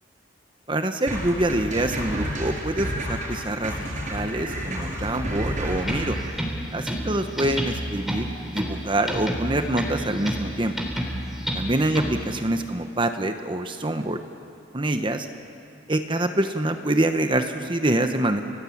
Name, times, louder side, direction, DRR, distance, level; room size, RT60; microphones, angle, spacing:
voice 1, 0.7-6.2 6.7-10.7 11.5-14.2 14.7-15.3 15.9-18.4, right 1 dB, 25° right, 7 dB, 1.0 m, -25 dB
sound 1, 1.1-6.3, equal, 45° right, 6.7 m, -30 dB
sound 2, 5.8-12.4, equal, ahead, 3.6 m, -30 dB
29.5 x 18.0 x 8.6 m, 2.5 s
head